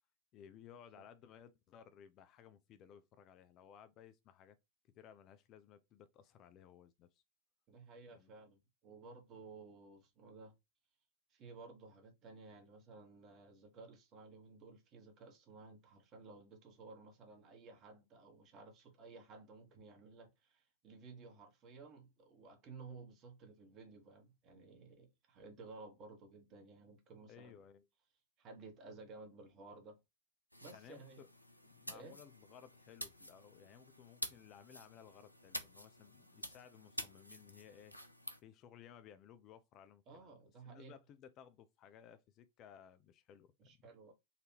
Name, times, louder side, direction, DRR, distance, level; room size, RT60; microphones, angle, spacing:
voice 1, 0.3-4.6 4.9-7.2 8.1-8.3 27.3-27.9 30.7-31.3 31.6-37.9 38.4-40.4 40.6-43.9, left 9 dB, 35° left, 0.4 m, -59 dB
voice 2, 7.7-10.5 11.3-27.6 28.4-30.0 30.6-31.2 31.9-32.2 40.1-40.9 43.6-44.1, right 3 dB, 35° right, 1.3 m, -55 dB
sound 1, 30.5-38.4, left 1 dB, 90° left, 0.5 m, -49 dB
4.1 x 2.6 x 2.9 m
figure-of-eight pair, 90°, 0 cm